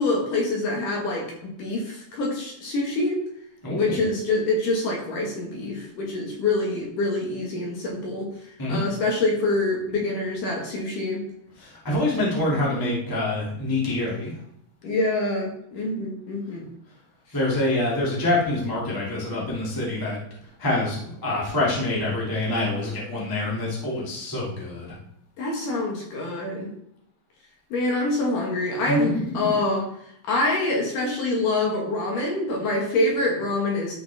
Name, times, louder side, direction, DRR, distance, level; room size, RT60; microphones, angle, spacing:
voice 1, 0.0-3.2 3.7-8.3 8.7-11.2 14.8-16.7 25.4-26.7 27.7-29.8 30.2-34.0, left 2 dB, 60° left, -1 dB, 2.7 m, -25 dB
voice 2, 3.6-4.0 8.6-8.8 11.6-14.3 17.3-20.2 20.6-24.9 29.1-29.2, left 2 dB, 15° left, -5 dB, 0.8 m, -26 dB
11.5 x 5.5 x 3.4 m, 0.73 s
omnidirectional pair, 4.8 m